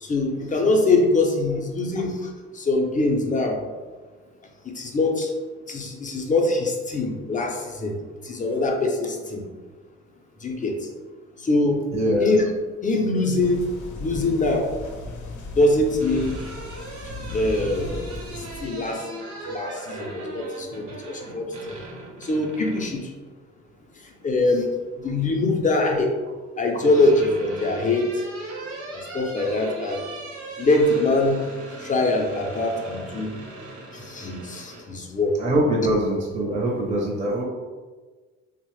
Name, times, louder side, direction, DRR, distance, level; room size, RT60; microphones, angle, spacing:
voice 1, 0.0-3.6 4.6-5.3 5.7-7.9 8.2-9.5 10.4-10.8 11.4-11.8 12.2-12.4 12.8-13.6 14.0-14.7 15.6-16.4 17.3-18.0 18.3-19.2 19.5-21.5 22.2-23.1 24.2-24.7 25.0-26.1 26.6-28.2 28.9-30.0 30.6-31.4 31.8-33.3 33.9-35.4, left 2 dB, 25° left, 1 dB, 0.5 m, -23 dB
voice 2, 11.9-12.3 35.4-37.4, right 1 dB, 25° right, -3 dB, 0.6 m, -23 dB
sound 1, 13.4-18.6, left 2 dB, 75° left, 0.5 m, -36 dB
sound 2, 16.0-22.9 24.4-25.1 26.3-34.9, right 2 dB, 75° right, 1.0 m, -39 dB
2.9 x 2.1 x 3.0 m, 1.4 s
cardioid pair, 90°, 30 cm